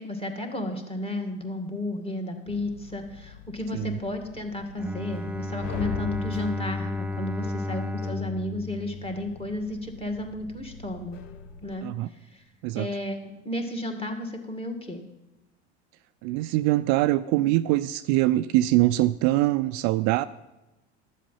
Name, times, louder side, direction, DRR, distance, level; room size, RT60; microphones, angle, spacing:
voice 1, 0.0-11.2 11.6-12.4 12.7-15.0, left 1 dB, 15° left, 3 dB, 2.0 m, -33 dB
sound 1, 2.5-11.7, left 8 dB, 65° left, 1.0 m, -42 dB
Bowed string instrument, 4.8-9.7, left 2 dB, 5° right, 0.5 m, -33 dB
voice 2, 16.2-20.2, right 16 dB, 55° right, 13 dB, 0.4 m, -23 dB
12.0 x 7.4 x 5.5 m, 0.98 s
hypercardioid pair, 75°, 35 cm